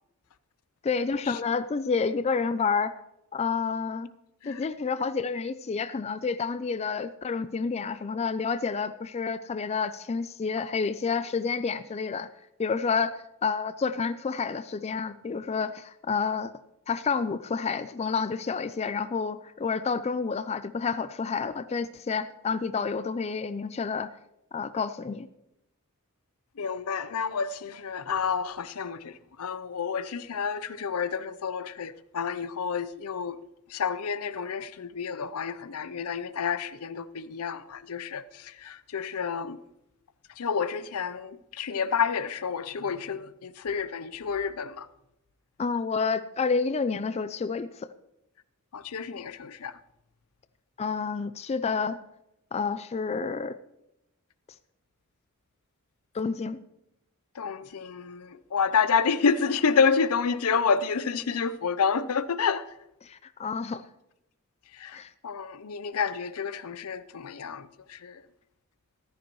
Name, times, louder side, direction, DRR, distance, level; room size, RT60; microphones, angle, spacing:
voice 1, 0.8-3.0 3.3-4.1 4.5-12.3 12.6-16.5 16.9-24.1 24.5-25.3 45.6-47.9 50.8-52.0 52.5-53.6 56.1-56.6 63.0-63.8 64.9-65.1, left 5 dB, 30° left, 0.3 m, -29 dB
voice 2, 26.6-33.4 33.7-39.6 40.4-44.9 48.7-49.8 57.3-62.7 64.7-68.2, left 6 dB, 80° left, 0.6 m, -29 dB
14.5 x 13.0 x 3.0 m
head